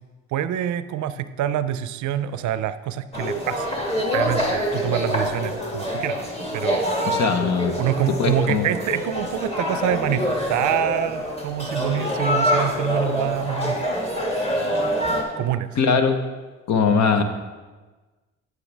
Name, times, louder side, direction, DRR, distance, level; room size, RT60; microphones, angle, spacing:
voice 1, 0.3-3.7 4.1-6.2 6.5-6.9 7.8-14.0 15.4-15.8, right 10 dB, 75° right, 13 dB, 0.5 m, -26 dB
sound 1, 3.1-15.2, equal, 20° left, 1.8 m, -25 dB
voice 2, 7.0-7.7 8.2-8.7 15.8-16.2 16.7-17.2, left 5 dB, 65° left, 7 dB, 1.0 m, -20 dB
9.2 x 8.6 x 3.4 m, 1.3 s
cardioid pair, 90°, 30 cm